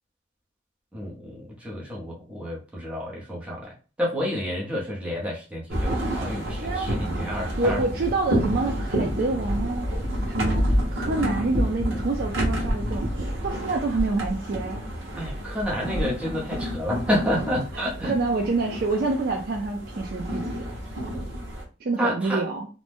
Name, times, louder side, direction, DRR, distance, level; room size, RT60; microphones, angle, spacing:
voice 1, 0.9-7.8 15.2-18.2 22.0-22.4, equal, 5° right, -4 dB, 0.7 m, -29 dB
Dhow on Indian Ocean, 5.7-21.6, equal, 85° right, 1.0 m, -29 dB
voice 2, 6.6-6.9 7.6-9.9 10.3-14.8 17.7-20.7 21.8-22.7, right 3 dB, 50° right, 3 dB, 0.4 m, -27 dB
2.5 x 2.1 x 3.4 m, 0.34 s
head